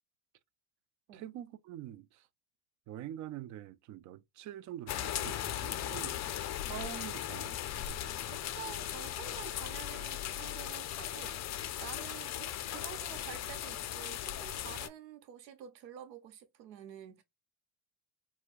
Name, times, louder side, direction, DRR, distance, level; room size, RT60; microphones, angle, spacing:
voice 1, 1.1-2.3 2.9-6.2 6.5-7.6, right 12 dB, 40° right, 0.4 m, -45 dB
sound 1, 4.9-14.9, left 11 dB, 35° left, 0.5 m, -38 dB
voice 2, 8.3-17.2, right 10 dB, 85° right, 0.8 m, -49 dB
4.3 x 2.2 x 2.4 m
hypercardioid pair, 70°, 48 cm